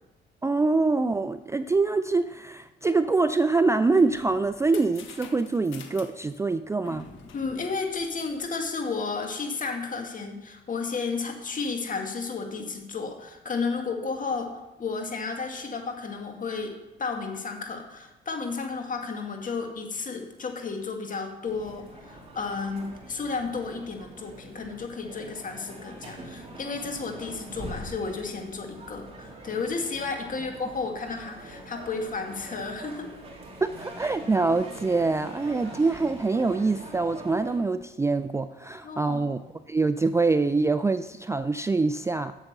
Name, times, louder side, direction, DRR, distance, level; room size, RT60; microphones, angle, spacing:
voice 1, 0.4-7.1 33.6-39.4 39.7-42.3, right 3 dB, 15° right, 11 dB, 0.3 m, -25 dB
sound 1, 3.9-8.7, left 5 dB, 75° left, 1.3 m, -48 dB
voice 2, 7.3-33.1 38.8-39.3, left 4 dB, 40° left, 4 dB, 1.8 m, -33 dB
sound 2, 21.4-37.6, right 1 dB, 30° right, 2.9 m, -43 dB
8.1 x 7.2 x 6.6 m, 1.0 s
cardioid pair, 90°, 20 cm